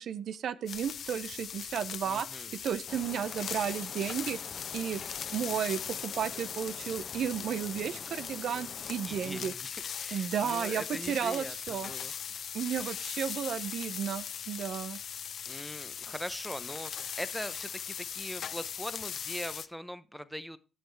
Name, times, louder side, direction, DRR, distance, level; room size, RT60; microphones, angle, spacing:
voice 1, 0.0-4.4 4.7-5.0 5.3-9.5 10.1-11.9 12.5-15.0, right 8 dB, 65° right, 15 dB, 0.5 m, -33 dB
sound 1, 0.7-19.7, left 8 dB, 60° left, 0.5 m, -39 dB
voice 2, 2.0-2.5 8.8-12.1 15.5-20.6, equal, ahead, 13 dB, 0.7 m, -41 dB
sound 2, 2.9-9.6, left 4 dB, 35° left, 0.9 m, -47 dB
15.0 x 6.4 x 3.3 m, 0.33 s
cardioid pair, 90°, 0 cm